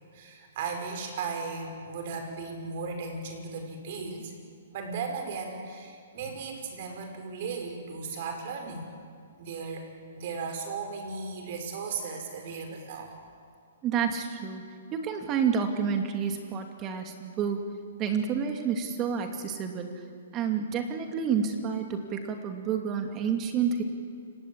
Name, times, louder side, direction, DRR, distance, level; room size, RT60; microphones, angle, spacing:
voice 1, 0.1-4.3 4.7-8.9 9.4-9.9 10.1-13.1, right 4 dB, 50° right, 4 dB, 5.6 m, -36 dB
voice 2, 13.8-14.6 14.9-17.6 18.0-20.0 20.3-23.8, right 7 dB, 25° right, 5 dB, 2.6 m, -29 dB
29.5 x 18.5 x 8.9 m, 2.2 s
hypercardioid pair, 140°, 0 cm